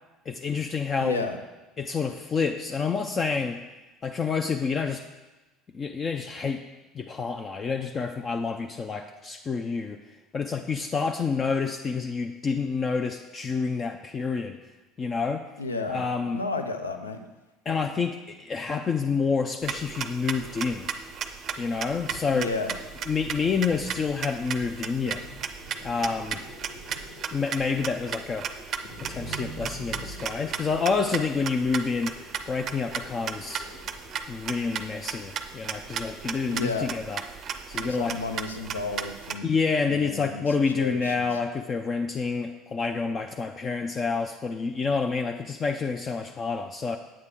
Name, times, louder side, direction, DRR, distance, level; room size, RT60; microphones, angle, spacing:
voice 1, 0.3-1.2 1.8-3.6 4.0-5.0 5.7-6.6 6.9-10.0 10.3-14.6 15.0-15.4 15.9-16.4 17.7-20.9 21.6-22.5 23.1-25.2 25.8-26.4 27.3-28.5 29.0-33.7 34.3-37.2 37.7-38.2 39.4-47.0, left 5 dB, 30° left, 5 dB, 0.5 m, -28 dB
voice 2, 1.0-1.4 15.6-16.0 16.3-17.2 22.3-22.7 36.5-36.9 37.7-39.5 39.9-40.5 40.7-41.3, left 3 dB, 80° left, 7 dB, 0.6 m, -32 dB
sound 1, 19.6-39.4, right 7 dB, 40° right, 0.5 m, -36 dB
sound 2, 21.9-34.3, equal, 50° left, 1.4 m, -46 dB
8.7 x 8.0 x 3.6 m, 1.1 s
figure-of-eight pair, 65°, 0 cm